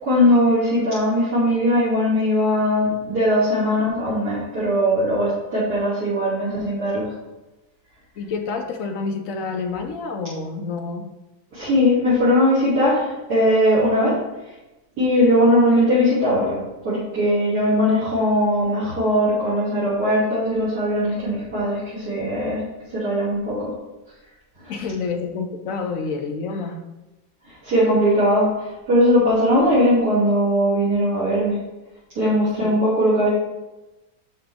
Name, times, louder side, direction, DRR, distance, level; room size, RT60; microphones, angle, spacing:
voice 1, 0.0-7.1 11.5-14.5 15.0-22.6 22.9-23.7 24.6-24.7 27.5-31.6 32.2-33.3, equal, 85° right, -14 dB, 3.4 m, -20 dB
voice 2, 8.2-11.1 24.7-27.0 32.6-32.7, left 4 dB, 65° left, 5 dB, 1.0 m, -28 dB
11.0 x 3.8 x 3.5 m, 1.0 s
omnidirectional pair, 1.6 m